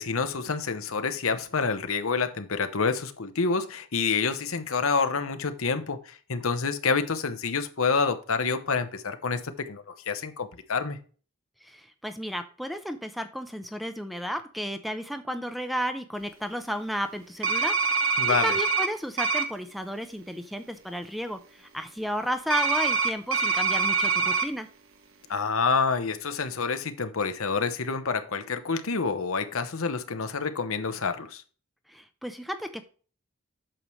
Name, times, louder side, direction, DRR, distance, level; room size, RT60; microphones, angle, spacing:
voice 1, 0.0-11.0 18.2-18.6 25.3-31.4, left 5 dB, 80° left, 0.9 m, -28 dB
voice 2, 11.6-24.7 31.9-32.8, equal, ahead, 0.6 m, -33 dB
sound 1, 17.4-18.9 19.2-19.4 22.5-24.5, right 5 dB, 80° right, 1.3 m, -24 dB
8.8 x 6.7 x 3.1 m
head